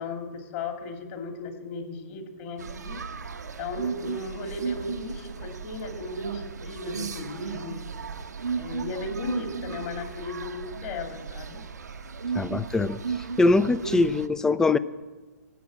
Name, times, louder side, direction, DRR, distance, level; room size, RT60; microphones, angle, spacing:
voice 1, 0.0-3.0 3.6-7.8 8.6-11.6, left 3 dB, 40° left, 4 dB, 2.5 m, -36 dB
sound 1, 2.6-14.3, right 5 dB, 80° right, 0.9 m, -35 dB
voice 2, 12.3-13.0 13.4-14.8, left 3 dB, 5° left, 17 dB, 0.4 m, -22 dB
14.0 x 8.4 x 8.3 m, 1.3 s
hypercardioid pair, 125°, 9 cm